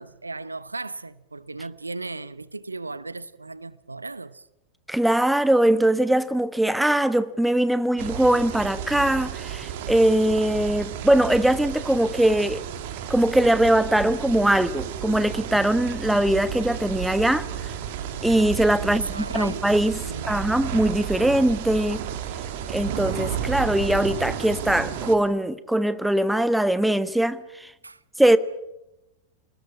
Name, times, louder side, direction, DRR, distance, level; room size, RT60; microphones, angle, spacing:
voice 1, 0.0-4.5 18.8-19.7 20.0-20.3 27.8-28.0, right 3 dB, 80° right, 0.9 m, -36 dB
voice 2, 4.9-12.6 13.1-17.7 18.2-22.0 22.7-27.7 28.2-28.4, right 1 dB, 5° right, 1.3 m, -21 dB
sound 1, 8.0-25.2, right 9 dB, 50° right, 3.0 m, -32 dB
29.0 x 20.0 x 8.7 m
figure-of-eight pair, 90°, 0 cm